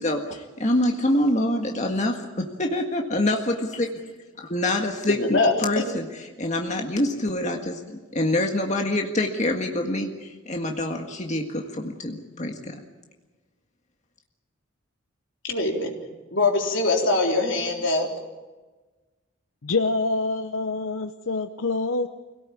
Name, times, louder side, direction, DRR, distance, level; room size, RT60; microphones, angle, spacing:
voice 1, 0.0-3.9 4.5-6.1 6.4-12.8, left 1 dB, 35° left, 2 dB, 1.8 m, -26 dB
voice 2, 5.1-5.8 15.4-16.0 16.3-18.1, left 2 dB, 65° left, 1 dB, 3.9 m, -23 dB
voice 3, 19.6-22.1, left 3 dB, 80° left, 9 dB, 0.8 m, -26 dB
25.5 x 18.0 x 8.6 m, 1.3 s
head